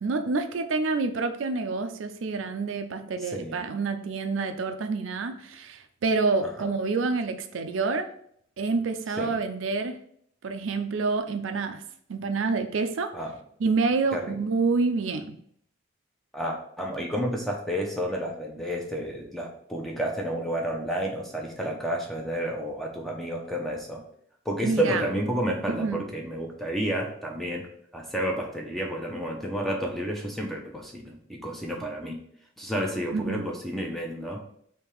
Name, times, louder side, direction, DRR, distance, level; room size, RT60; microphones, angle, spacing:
voice 1, 0.0-8.1 8.6-10.0 10.4-11.8 12.1-13.1 13.6-15.4 24.6-25.1 25.7-26.0 33.1-33.5, right 4 dB, 90° right, 8 dB, 0.4 m, -27 dB
voice 2, 3.2-3.6 6.6-6.7 9.2-9.4 13.1-13.3 14.1-14.3 16.3-24.0 24.4-27.7 27.9-32.2 32.6-34.4, equal, ahead, 0 dB, 0.6 m, -31 dB
3.5 x 2.8 x 4.5 m, 0.65 s
head